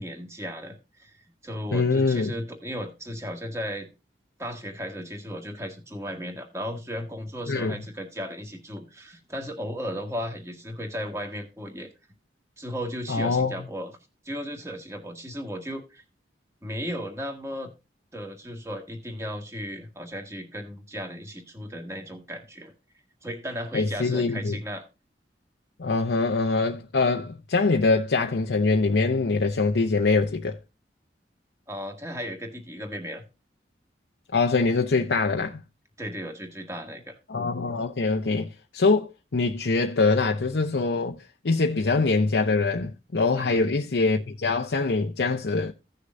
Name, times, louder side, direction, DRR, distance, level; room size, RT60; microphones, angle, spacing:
voice 1, 0.0-3.9 4.4-11.9 12.6-14.0 14.2-16.0 16.6-17.7 18.1-22.7 23.2-24.9 31.7-33.2 36.0-37.2 43.3-43.7, equal, 15° right, 1.7 m, -35 dB
voice 2, 1.7-2.3 7.5-7.7 13.1-13.5 23.7-24.6 25.8-30.6 34.3-35.6 37.3-41.2 41.4-45.7, left 3 dB, 80° left, 0.7 m, -24 dB
16.0 x 6.5 x 2.6 m
head